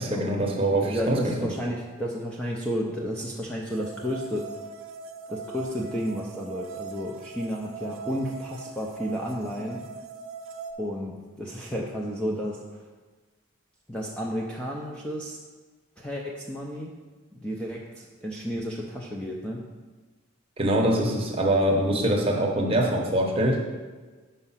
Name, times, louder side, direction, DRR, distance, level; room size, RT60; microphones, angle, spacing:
voice 1, 0.0-1.5 20.6-23.6, right 1 dB, 25° right, 0 dB, 0.9 m, -24 dB
voice 2, 0.8-4.5 5.3-9.8 10.8-12.8 13.9-15.4 16.0-16.9 17.3-19.6, equal, 5° left, -3 dB, 0.5 m, -32 dB
sound 1, 3.7-10.7, right 5 dB, 70° right, 0.6 m, -41 dB
5.5 x 4.9 x 5.6 m, 1.3 s
head